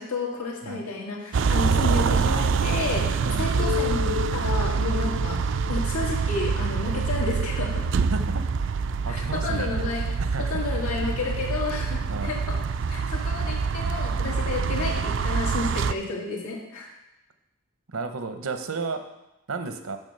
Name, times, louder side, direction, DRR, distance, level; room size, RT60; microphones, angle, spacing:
voice 1, 0.0-7.9 9.1-12.6 12.9-16.9, left 3 dB, 90° left, -1 dB, 2.0 m, -31 dB
sound 1, 1.3-15.9, right 5 dB, 60° right, 0.3 m, -25 dB
voice 2, 3.2-3.6 8.1-8.4 9.0-9.7 9.9-10.6 12.1-12.3 17.9-19.0 19.5-20.0, right 3 dB, 85° right, 7 dB, 0.9 m, -33 dB
sound 2, 3.6-7.1, left 10 dB, 35° left, 0.9 m, -34 dB
7.2 x 6.1 x 6.6 m, 0.93 s
head